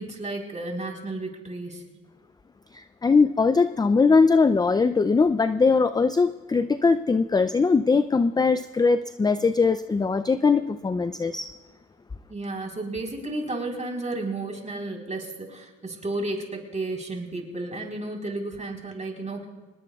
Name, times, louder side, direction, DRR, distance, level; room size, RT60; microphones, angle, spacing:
voice 1, 0.0-1.8 12.3-19.5, right 2 dB, 25° right, 1 dB, 3.9 m, -32 dB
voice 2, 2.7-11.5, left 4 dB, 15° left, 12 dB, 0.4 m, -21 dB
26.0 x 20.0 x 2.3 m, 1.3 s
cardioid pair, 90°, 30 cm